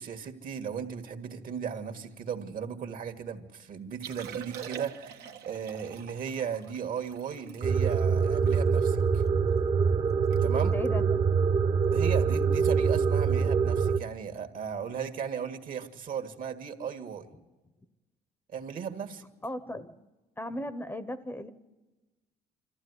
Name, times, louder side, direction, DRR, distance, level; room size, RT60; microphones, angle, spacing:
voice 1, 0.0-9.2 10.4-10.8 11.9-17.3 18.5-19.3, right 7 dB, 55° right, 7 dB, 1.9 m, -36 dB
Liquid, 3.9-9.3 9.7-9.8 10.1-10.4 10.7-10.9 11.5-11.7 13.2-13.3, right 8 dB, 70° right, 1.5 m, -44 dB
sound 1, 7.6-14.0, right 6 dB, 35° right, 1.2 m, -25 dB
voice 2, 10.6-11.0 19.4-20.1 20.4-21.5, left 1 dB, 10° left, 13 dB, 0.9 m, -36 dB
25.5 x 14.5 x 9.7 m, 1.1 s
cardioid pair, 110°, 17 cm